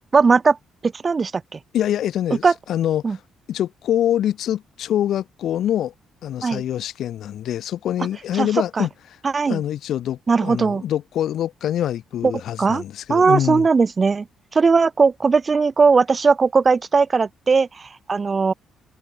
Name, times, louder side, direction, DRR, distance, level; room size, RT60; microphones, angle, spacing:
voice 1, 0.1-0.6 0.8-1.6 2.4-2.5 3.0-3.2 6.4-6.6 8.4-8.5 8.8-8.9 9.3-9.6 10.3-10.8 12.6-12.8 13.1-14.3 14.5-18.5, right 4 dB, 35° right, 1.7 m, -18 dB
voice 2, 1.7-3.2 3.5-5.9 6.2-8.9 9.5-13.7, left 11 dB, 75° left, 6.4 m, -25 dB
cardioid pair, 90°, 0 cm